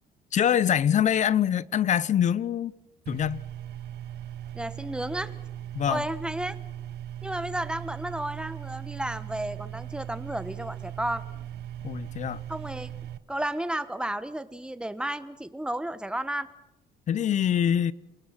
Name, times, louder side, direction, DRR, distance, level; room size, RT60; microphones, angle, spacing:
voice 1, 0.3-2.7 3.1-3.4 5.7-6.0 11.8-12.4 17.1-17.9, left 9 dB, 45° left, 0.7 m, -24 dB
sound 1, 3.1-13.2, right 11 dB, 75° right, 1.2 m, -39 dB
voice 2, 4.5-5.3 5.9-6.6 7.2-11.2 12.5-12.9 13.3-16.5, right 1 dB, 5° right, 1.4 m, -32 dB
28.0 x 19.5 x 6.0 m
cardioid pair, 110°, 17 cm